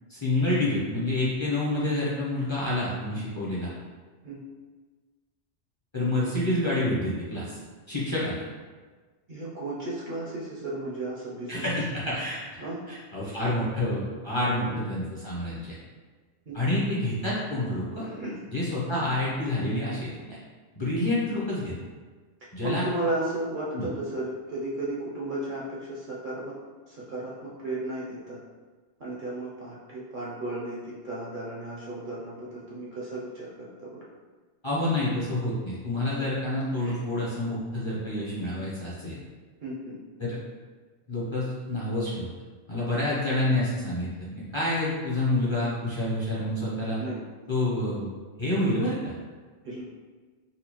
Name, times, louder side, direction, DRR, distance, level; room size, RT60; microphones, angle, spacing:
voice 1, 0.1-3.7 5.9-7.6 7.9-8.4 11.5-12.4 12.9-15.8 16.5-18.1 18.5-20.4 20.7-21.7 22.5-22.8 23.7-23.9 34.6-39.2 40.2-40.4 41.1-42.3 42.7-44.1 44.3-47.0 47.5-48.1 48.4-49.0, left 1 dB, 30° left, -8 dB, 0.7 m, -28 dB
voice 2, 9.3-11.8 12.6-12.8 14.5-14.8 16.5-16.6 18.0-18.4 22.6-26.6 26.9-28.4 29.0-34.0 36.8-37.0 39.0-39.1 39.6-40.0 47.0-47.2 48.8-48.9 49.6-49.8, right 2 dB, 55° right, -6 dB, 0.7 m, -34 dB
4.1 x 2.3 x 2.9 m, 1.4 s
omnidirectional pair, 1.2 m